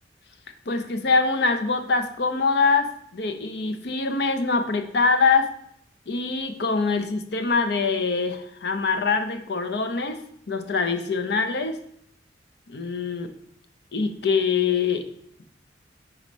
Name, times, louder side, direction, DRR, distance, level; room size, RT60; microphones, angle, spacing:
voice 1, 0.7-5.5 6.1-11.8 12.7-13.3 13.9-15.1, left 4 dB, 65° left, 7 dB, 0.6 m, -24 dB
5.0 x 4.2 x 5.0 m, 0.68 s
head